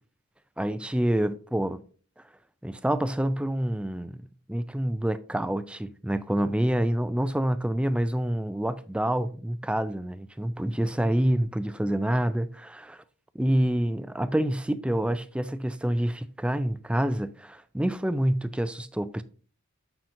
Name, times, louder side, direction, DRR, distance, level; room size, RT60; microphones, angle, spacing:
voice 1, 0.6-1.8 2.6-4.2 4.5-13.0 13.3-19.2, right 1 dB, 5° right, 0.3 m, -27 dB
7.5 x 5.7 x 2.6 m
head